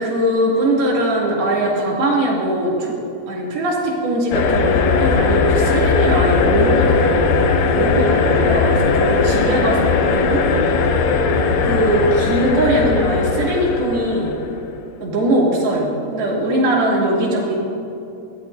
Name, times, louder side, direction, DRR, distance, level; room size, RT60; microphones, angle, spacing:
voice 1, 0.0-2.9 3.3-10.8 11.6-14.4 15.0-17.6, right 1 dB, 70° right, -4 dB, 4.6 m, -20 dB
sound 1, 4.3-14.6, left 4 dB, 85° left, 1.6 m, -18 dB
23.0 x 16.0 x 2.7 m, 2.7 s
omnidirectional pair, 4.5 m